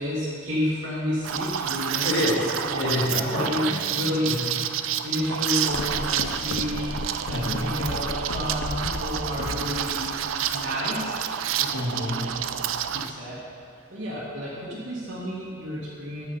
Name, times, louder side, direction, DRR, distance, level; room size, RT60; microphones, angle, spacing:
voice 1, 0.0-2.1 2.7-4.4 5.0-10.1 10.5-11.8 12.1-12.2 12.6-13.4 13.9-16.3, left 1 dB, 60° right, -9 dB, 1.6 m, -31 dB
Liquid, 1.2-13.1, right 9 dB, 90° right, 0.4 m, -29 dB
voice 2, 2.0-2.5 2.8-3.8 4.3-4.4 7.3-7.8 9.4-9.5 11.7-12.6, left 1 dB, 55° left, -4 dB, 1.7 m, -28 dB
sound 1, 5.7-10.8, left 3 dB, 70° left, 0.5 m, -35 dB
9.0 x 7.3 x 5.6 m, 2.4 s
head